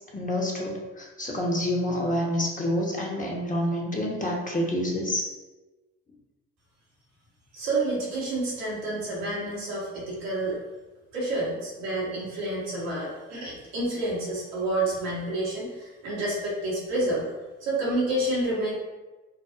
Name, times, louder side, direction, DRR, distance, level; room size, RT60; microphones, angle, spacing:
voice 1, 0.0-5.3, left 1 dB, 25° left, -2 dB, 1.0 m, -28 dB
voice 2, 7.5-10.6 11.1-17.3 17.6-18.7, right 2 dB, 90° right, -6 dB, 1.1 m, -29 dB
5.4 x 2.0 x 2.5 m, 1.2 s
hypercardioid pair, 45°, 33 cm